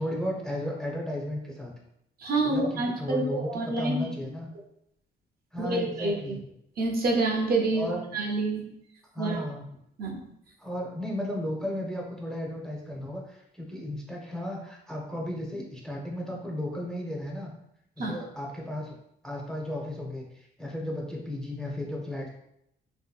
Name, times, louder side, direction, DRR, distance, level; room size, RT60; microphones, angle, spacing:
voice 1, 0.0-1.7 2.5-4.5 5.5-6.4 7.7-8.0 9.1-9.6 10.6-17.5 18.0-18.9 19.2-22.3, left 1 dB, 5° left, -2 dB, 0.6 m, -34 dB
voice 2, 2.2-4.1 5.6-6.4 6.8-8.6 9.2-9.4 10.0-10.2 18.0-18.2, right 2 dB, 50° right, 0 dB, 0.6 m, -28 dB
2.7 x 2.6 x 2.3 m, 0.77 s
cardioid pair, 90°, 20 cm